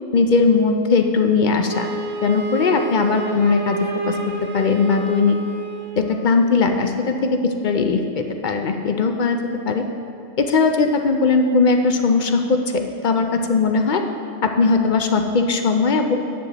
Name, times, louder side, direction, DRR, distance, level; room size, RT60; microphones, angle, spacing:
voice 1, 0.1-1.9 2.2-3.8 4.1-4.2 4.5-5.4 6.0-9.4 9.7-9.8 10.4-14.0 14.4-16.2, left 4 dB, 50° left, 5 dB, 0.6 m, -19 dB
Wind instrument woodwind instrument, 1.7-6.1, right 5 dB, 55° right, 1.2 m, -29 dB
10.0 x 8.2 x 4.0 m, 2.6 s
omnidirectional pair, 1.3 m